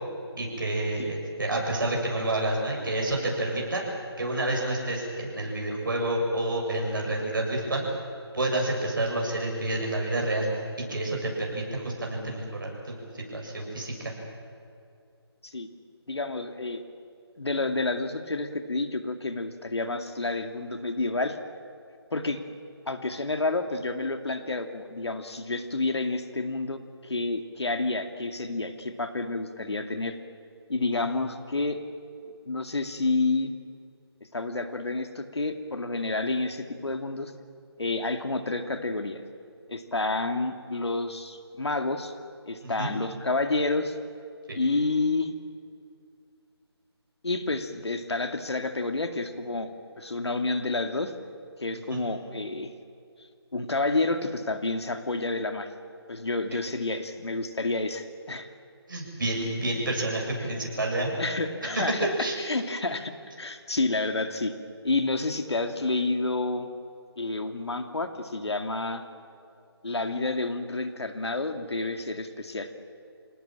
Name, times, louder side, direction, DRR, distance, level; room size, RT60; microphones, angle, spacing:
voice 1, 0.4-3.8 4.2-7.8 8.3-10.5 10.9-14.1 30.9-31.0 42.6-42.9 44.5-44.6 51.9-52.0 58.9-61.1 61.6-61.8 62.2-62.3, right 1 dB, 50° right, -1 dB, 7.6 m, -29 dB
voice 2, 16.1-16.8 17.4-21.4 22.1-22.4 22.9-30.2 30.7-31.8 32.5-33.5 34.3-37.3 37.8-39.2 39.7-42.1 42.4-44.0 44.5-45.3 47.2-49.7 50.0-51.1 51.6-52.7 53.5-55.7 56.1-58.5 61.2-63.1 63.4-64.5 64.8-66.7 67.2-69.0 69.8-72.7, left 3 dB, 75° left, 7 dB, 2.4 m, -29 dB
27.5 x 19.0 x 9.0 m, 2.4 s
figure-of-eight pair, 175°, 14 cm